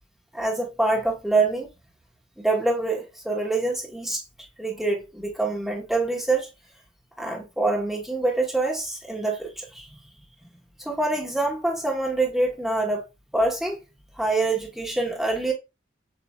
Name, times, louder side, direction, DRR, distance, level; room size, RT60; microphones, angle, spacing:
voice 1, 0.3-1.7 2.4-4.2 4.6-6.5 7.2-10.0 10.8-13.0 13.3-13.8 14.1-15.5, right 2 dB, ahead, 1.2 m, -25 dB
7.1 x 3.0 x 2.3 m
head